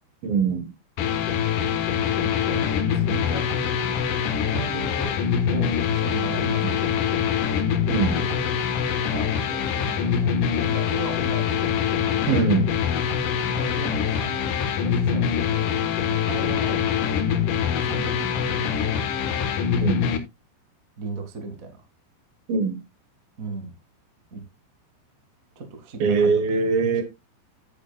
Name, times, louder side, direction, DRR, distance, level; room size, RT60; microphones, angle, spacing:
voice 1, 0.2-0.7 6.4-6.5 7.9-8.2 12.3-12.7 19.8-20.0 22.5-22.8 26.0-27.0, right 4 dB, 65° right, 2.7 m, -22 dB
sound 1, 1.0-20.2, left 8 dB, 65° left, 2.1 m, -24 dB
voice 2, 2.2-4.0 4.5-5.1 5.5-7.3 7.8-8.5 9.1-11.7 12.0-12.4 13.4-15.7 16.1-16.8 17.8-19.0 19.3-19.5 21.0-21.8 23.4-23.7 24.3-24.4 25.5-26.4, right 3 dB, 50° right, 1.0 m, -37 dB
12.0 x 8.9 x 2.3 m
omnidirectional pair, 5.2 m